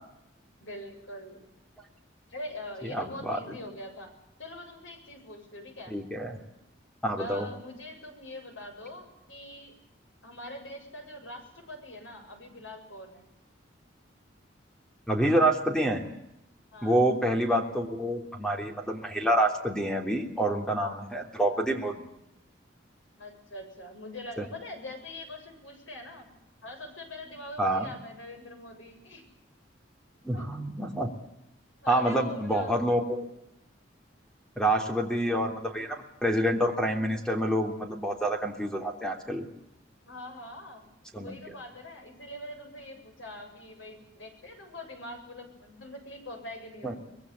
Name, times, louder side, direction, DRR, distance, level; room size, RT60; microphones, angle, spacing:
voice 1, 0.6-1.4 2.3-4.1 4.4-5.9 7.2-9.8 10.2-13.2 16.7-17.0 23.2-26.3 26.6-29.2 30.3-30.4 31.8-32.8 40.1-40.8 41.2-47.0, left 1 dB, 85° left, 4 dB, 7.8 m, -43 dB
voice 2, 2.8-3.4 5.9-6.4 7.0-7.5 15.1-16.0 16.8-22.1 24.4-24.5 27.6-27.9 30.2-31.1 31.9-33.2 34.6-39.4 41.1-41.4 46.8-46.9, right 1 dB, 5° left, 3 dB, 3.3 m, -27 dB
24.5 x 21.5 x 8.3 m, 0.83 s
head